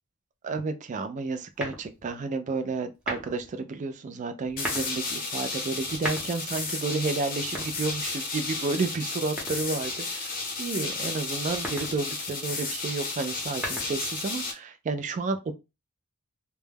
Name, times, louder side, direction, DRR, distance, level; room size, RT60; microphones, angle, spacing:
voice 1, 0.4-15.5, right 3 dB, 35° right, 0.3 m, -31 dB
sound 1, 1.6-2.2 2.9-3.5 4.4-5.0 5.8-6.6 7.4-8.3 9.4-10.0 11.4-12.0 13.3-14.2, equal, 5° right, 0.7 m, -37 dB
sound 2, 4.6-14.5, left 3 dB, 40° left, 0.6 m, -33 dB
2.2 x 2.1 x 3.2 m
head